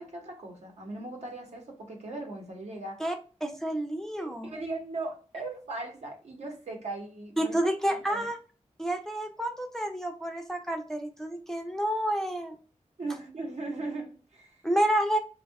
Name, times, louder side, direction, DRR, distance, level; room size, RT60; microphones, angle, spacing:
voice 1, 0.0-3.0 4.2-7.5 8.1-8.3 13.0-14.6, right 2 dB, 65° right, 1.0 m, -38 dB
voice 2, 3.4-4.5 7.4-8.4 8.8-12.6 14.6-15.2, right 1 dB, 5° left, 0.5 m, -29 dB
2.7 x 2.4 x 3.4 m
wide cardioid pair, 75°, 12 cm